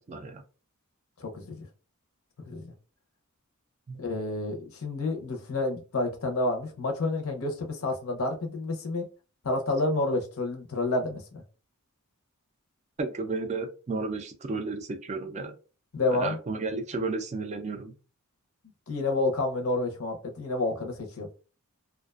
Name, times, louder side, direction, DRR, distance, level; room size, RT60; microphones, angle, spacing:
voice 1, 0.1-0.4 3.9-4.0 13.0-15.6 16.1-17.9, right 3 dB, 30° right, 0.3 m, -33 dB
voice 2, 1.2-1.7 2.5-2.7 4.0-9.1 9.4-11.4 15.9-16.4 18.9-21.3, left 2 dB, 70° left, 0.6 m, -29 dB
2.4 x 2.2 x 2.3 m
head